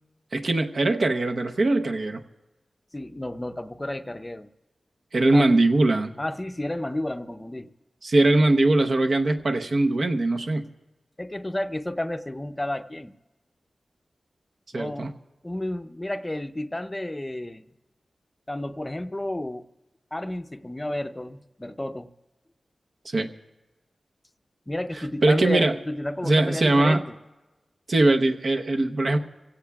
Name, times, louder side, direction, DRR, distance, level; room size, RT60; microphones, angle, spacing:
voice 1, 0.3-2.2 5.1-6.1 8.0-10.7 14.7-15.1 23.0-23.3 25.2-25.8 26.2-27.0 27.9-29.2, right 2 dB, 60° right, 5 dB, 0.8 m, -21 dB
voice 2, 2.9-4.5 5.3-5.6 6.2-7.7 11.2-13.1 14.7-15.1 15.4-17.6 18.5-19.7 20.1-22.1 24.7-27.2, left 1 dB, 15° left, 10 dB, 0.6 m, -31 dB
27.5 x 16.5 x 2.3 m, 1.1 s
wide cardioid pair, 95°, 0 cm